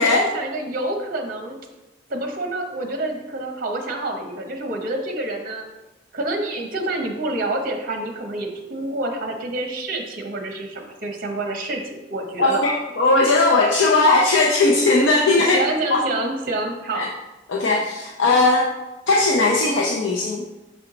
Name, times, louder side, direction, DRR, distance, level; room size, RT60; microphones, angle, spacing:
voice 1, 0.1-1.6 2.1-5.7 6.1-12.8 15.4-17.1, right 2 dB, 45° right, 3 dB, 0.8 m, -27 dB
voice 2, 12.4-15.6 15.9-16.0 17.0-17.1 17.5-18.7 19.1-20.4, left 3 dB, 75° left, -2 dB, 0.6 m, -18 dB
6.1 x 4.5 x 3.8 m, 1.1 s
head